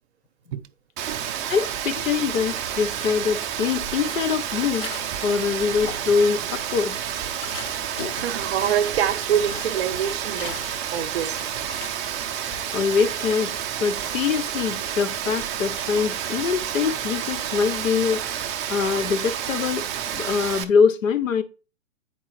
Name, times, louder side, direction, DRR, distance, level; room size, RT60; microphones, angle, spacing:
Rain, 1.0-20.6, right 9 dB, 25° right, 0.5 m, -30 dB
voice 1, 1.5-4.9 5.2-7.0 12.7-13.5 13.8-19.8 20.1-21.4, left 6 dB, 80° left, 0.8 m, -23 dB
sound 1, 2.0-2.7 3.1-5.3 5.7-6.5 6.9-12.6, left 6 dB, 45° left, 1.1 m, -40 dB
voice 2, 8.2-10.7 10.9-11.5, right 9 dB, 55° right, 0.7 m, -25 dB
9.0 x 4.6 x 3.0 m
hypercardioid pair, 120°, 39 cm